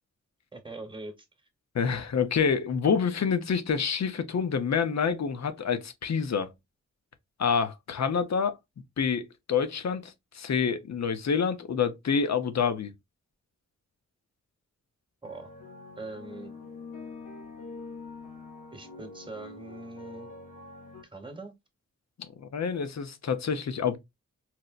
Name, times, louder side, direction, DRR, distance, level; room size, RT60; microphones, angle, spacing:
voice 1, 0.5-1.1 15.2-15.5 16.0-16.5 18.7-20.3 21.1-21.5, right 2 dB, 15° right, 1.0 m, -42 dB
voice 2, 1.7-6.5 7.4-8.6 9.0-12.9 22.4-24.0, left 6 dB, 65° left, 0.7 m, -27 dB
sound 1, 15.2-21.0, left 3 dB, 90° left, 1.0 m, -45 dB
4.2 x 2.1 x 2.4 m
cardioid pair, 45°, 30 cm